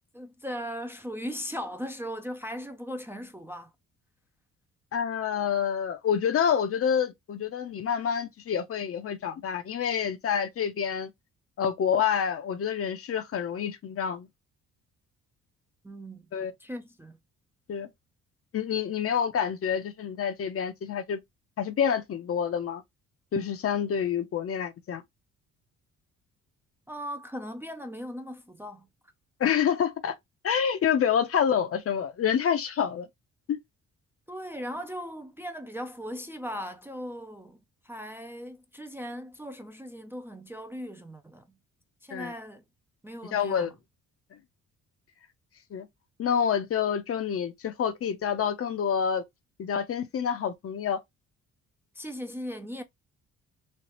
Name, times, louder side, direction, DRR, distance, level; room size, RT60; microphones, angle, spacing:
voice 1, 0.1-3.7 15.8-16.3 16.6-17.2 26.9-28.9 34.3-37.6 37.8-41.5 42.0-42.6 43.0-43.7 51.9-52.8, equal, 10° right, 0.4 m, -38 dB
voice 2, 4.9-11.1 11.6-14.3 16.3-16.5 17.7-17.9 18.5-21.2 21.6-22.8 23.3-25.0 29.4-30.1 30.4-33.1 33.5-33.6 42.1-42.3 43.3-43.7 45.7-45.9 46.2-49.2 49.6-51.0, left 8 dB, 50° left, 0.7 m, -27 dB
3.2 x 2.4 x 2.9 m
cardioid pair, 90°, 30 cm